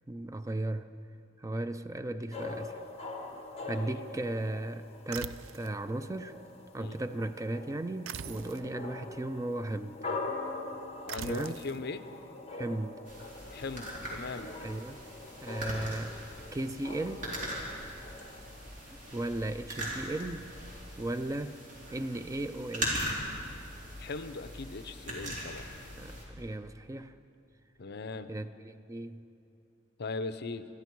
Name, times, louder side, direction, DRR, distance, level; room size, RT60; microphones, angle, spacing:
voice 1, 0.1-0.9 1.4-2.8 3.6-6.3 6.7-10.0 11.2-11.6 12.5-13.0 14.6-15.0 15.4-16.2 16.5-17.3 19.1-20.5 21.0-21.6 21.9-23.2 26.0-27.2 28.3-29.2, right 1 dB, 15° right, 11 dB, 0.4 m, -36 dB
sound 1, 2.3-18.6, left 2 dB, 30° left, 1.4 m, -43 dB
sound 2, 5.1-5.8 8.0-8.7 11.1-11.8, right 8 dB, 90° right, 0.4 m, -42 dB
voice 2, 11.1-12.1 13.5-14.5 24.0-25.7 27.8-28.3 30.0-30.7, left 3 dB, 55° left, 11 dB, 0.6 m, -39 dB
sound 3, 13.1-26.2, equal, 40° right, 3.5 m, -40 dB
22.0 x 13.5 x 4.6 m, 2.6 s
head